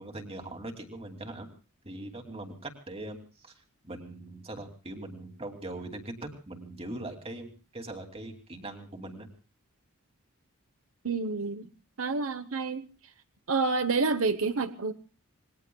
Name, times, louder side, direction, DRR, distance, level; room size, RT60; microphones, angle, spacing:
voice 1, 0.0-1.5 1.8-3.5 3.8-9.3, right 1 dB, 25° right, 4 dB, 2.6 m, -41 dB
voice 2, 11.0-11.7 12.0-12.8 13.5-14.9, right 4 dB, 70° right, 10 dB, 1.0 m, -28 dB
27.0 x 21.0 x 2.3 m, 0.36 s
head